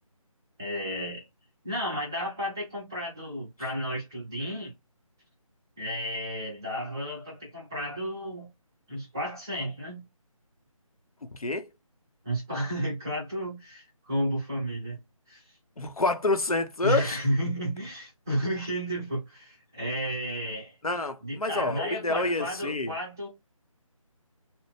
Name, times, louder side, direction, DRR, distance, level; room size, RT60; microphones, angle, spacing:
voice 1, 0.6-1.2 1.6-4.7 5.8-8.5 8.9-10.0 12.2-15.0 15.3-15.5 16.8-20.7 21.2-23.3, equal, 5° right, 0.5 m, -32 dB
voice 2, 15.8-17.2 20.8-22.9, left 2 dB, 85° left, 0.7 m, -28 dB
2.8 x 2.1 x 3.3 m
figure-of-eight pair, 155°, 18 cm